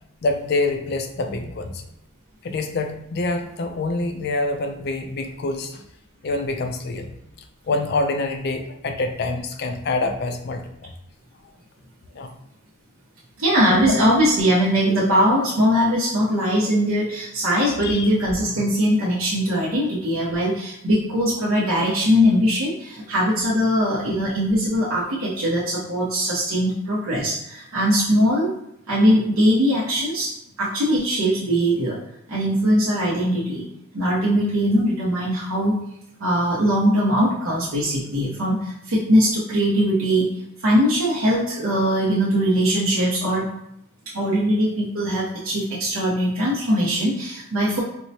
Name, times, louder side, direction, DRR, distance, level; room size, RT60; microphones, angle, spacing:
voice 1, 0.2-1.8 2.4-5.8 6.2-7.2 7.7-10.9 12.1-12.3 13.7-14.0 17.8-18.1, left 2 dB, 50° left, 6 dB, 0.4 m, -26 dB
voice 2, 13.4-28.5 28.9-30.3 30.6-32.0 32.3-33.6 33.9-35.8 36.2-40.3 40.6-43.5 44.1-47.8, equal, 80° right, -7 dB, 0.8 m, -21 dB
4.4 x 2.1 x 2.7 m, 0.79 s
head